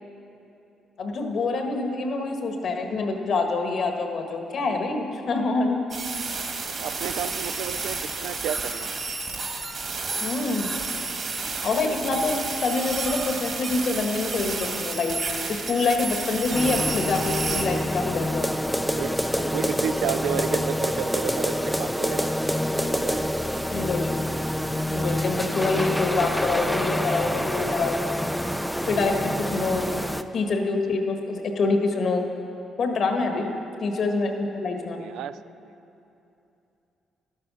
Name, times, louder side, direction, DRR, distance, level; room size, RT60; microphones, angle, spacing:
voice 1, 1.0-5.9 10.2-10.7 11.6-15.2 15.5-18.5 23.7-24.1 24.9-28.0 28.9-29.9 30.3-32.2 32.8-33.5 33.8-35.0, left 3 dB, 60° left, 4 dB, 1.4 m, -26 dB
sound 1, 5.9-17.6, right 4 dB, 50° right, 1.9 m, -31 dB
voice 2, 6.6-8.9 18.9-22.3 22.8-23.3 33.3-33.7 34.8-35.7, right 10 dB, 85° right, 13 dB, 0.3 m, -32 dB
sound 2, 16.5-30.2, equal, ahead, 0.4 m, -27 dB
12.0 x 9.6 x 6.2 m, 2.8 s
cardioid pair, 90°, 0 cm